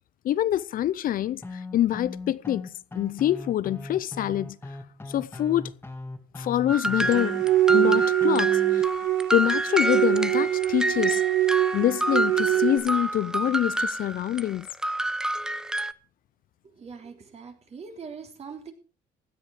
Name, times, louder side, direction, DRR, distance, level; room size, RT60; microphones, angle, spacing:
voice 1, 0.2-4.6 5.1-5.7 6.4-7.4 7.7-8.9 9.3-11.2 11.7-14.7, left 12 dB, 55° left, 0.6 m, -25 dB
sound 1, 1.4-8.8, left 2 dB, 15° left, 2.1 m, -38 dB
sound 2, 6.7-15.9, right 1 dB, 5° right, 0.6 m, -28 dB
sound 3, 7.0-12.8, right 14 dB, 80° right, 1.9 m, -24 dB
voice 2, 16.8-18.7, right 5 dB, 40° right, 3.6 m, -42 dB
16.5 x 10.5 x 4.9 m
cardioid pair, 110°, 17 cm